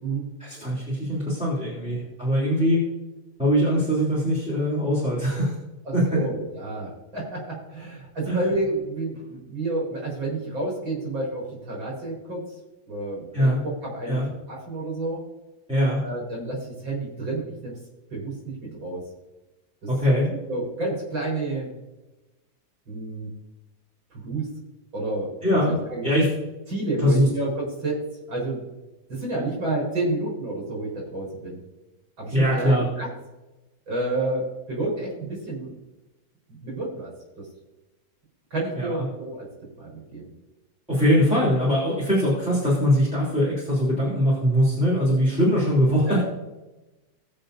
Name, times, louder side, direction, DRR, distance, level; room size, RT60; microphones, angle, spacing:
voice 1, 0.4-2.9 3.4-5.5 5.9-6.3 8.3-8.4 13.3-13.6 14.1-14.3 15.7-16.0 19.9-20.3 25.4-26.3 27.0-27.3 32.3-32.9 38.8-39.1 40.9-46.2, equal, 5° right, -8 dB, 3.3 m, -22 dB
voice 2, 5.9-12.5 12.9-14.2 14.5-15.2 16.0-17.8 18.1-18.3 18.6-19.0 20.5-21.7 22.9-23.3 24.1-24.5 24.9-25.3 25.6-26.1 26.7-28.6 29.1-31.6 32.2-33.1 33.9-35.7 36.6-37.5 38.5-39.5 39.8-40.3 46.0-46.2, right 2 dB, 80° right, -4 dB, 5.2 m, -30 dB
20.5 x 7.0 x 2.7 m, 1.1 s
omnidirectional pair, 2.1 m